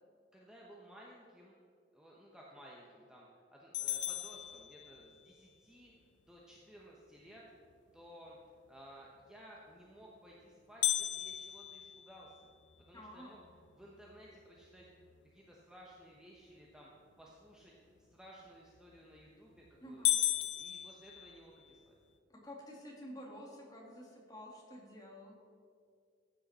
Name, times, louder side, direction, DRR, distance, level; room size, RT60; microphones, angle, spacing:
voice 1, 0.3-1.6 1.9-5.9 6.2-7.4 7.9-8.4 8.7-12.5 12.9-13.4 13.7-14.9 15.2-16.9 17.2-17.7 18.0-20.3 20.6-22.0, equal, 5° right, -4 dB, 1.1 m, -56 dB
sound 1, 3.7-5.3 10.8-13.0 13.5-13.6 14.1-14.2 14.8-15.2 18.8-19.2 19.6-19.7 20.0-21.8, left 13 dB, 70° left, 0.7 m, -35 dB
voice 2, 12.9-13.4 19.8-20.2 22.3-25.4, equal, 20° left, -3 dB, 2.4 m, -50 dB
15.0 x 8.8 x 4.3 m, 2.3 s
head